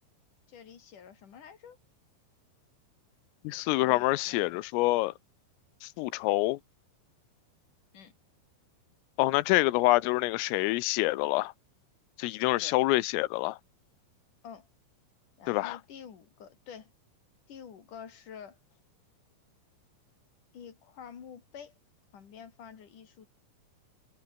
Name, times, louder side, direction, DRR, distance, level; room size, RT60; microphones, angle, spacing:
voice 1, 0.5-1.8 3.8-4.6 7.9-8.1 12.5-12.8 14.4-14.7 15.4-16.9 17.5-18.6 20.5-21.7 22.1-23.3, left 7 dB, 45° left, 3.8 m, -48 dB
voice 2, 3.5-5.1 5.8-6.6 9.2-11.5 12.2-13.6 15.5-15.8, left 20 dB, 85° left, 3.5 m, -26 dB
omnidirectional pair, 5.8 m